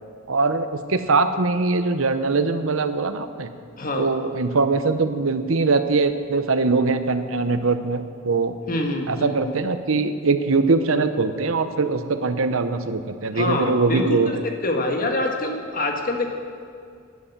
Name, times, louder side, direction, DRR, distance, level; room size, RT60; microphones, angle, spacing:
voice 1, 0.3-3.5 4.0-8.5 9.1-14.4, right 3 dB, 90° right, 10 dB, 0.8 m, -22 dB
voice 2, 8.7-9.5 13.3-14.4 14.6-16.3, left 1 dB, 45° left, 3 dB, 1.6 m, -25 dB
11.5 x 10.5 x 7.3 m, 2.2 s
head